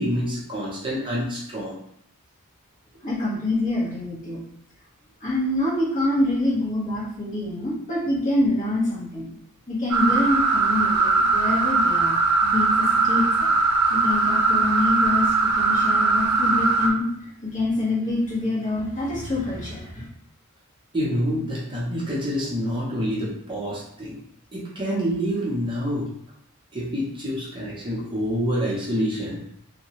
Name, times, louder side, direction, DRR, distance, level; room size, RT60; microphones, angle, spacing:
voice 1, 0.0-1.7 20.9-24.2 24.5-26.1 26.7-29.4, equal, 20° right, -6 dB, 0.7 m, -27 dB
voice 2, 3.0-4.4 5.2-9.3 9.7-12.2 12.4-13.5 13.9-20.1, left 1 dB, 35° left, -7 dB, 1.1 m, -26 dB
sound 1, 9.9-16.9, right 3 dB, 90° right, 0.5 m, -20 dB
2.7 x 2.2 x 2.9 m, 0.70 s
head